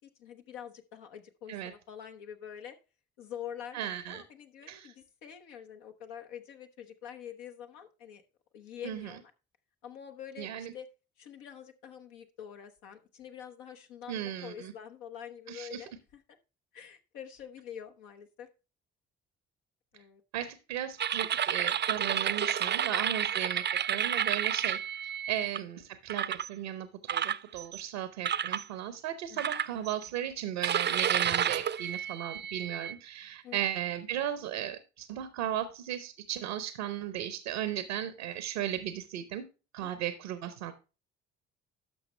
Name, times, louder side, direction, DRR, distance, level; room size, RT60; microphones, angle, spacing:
voice 1, 0.0-2.8 3.2-8.2 8.5-9.3 9.8-10.9 11.2-16.2 16.7-18.5 19.9-20.2 25.4-25.5 29.3-29.5 33.4-33.6 39.8-39.9, left 9 dB, 85° left, 5 dB, 1.1 m, -46 dB
voice 2, 3.7-4.2 4.7-4.9 8.8-9.1 10.4-10.7 14.1-14.7 15.5-15.8 20.3-24.8 25.3-39.5 39.7-40.7, right 11 dB, 85° right, 12 dB, 0.8 m, -36 dB
sound 1, 21.0-25.6 26.1-26.5 27.1-27.8 28.2-28.6 29.4-30.1 30.6-32.9, right 9 dB, 35° right, 0.5 m, -30 dB
12.0 x 6.3 x 3.2 m, 0.31 s
hypercardioid pair, 45°, 31 cm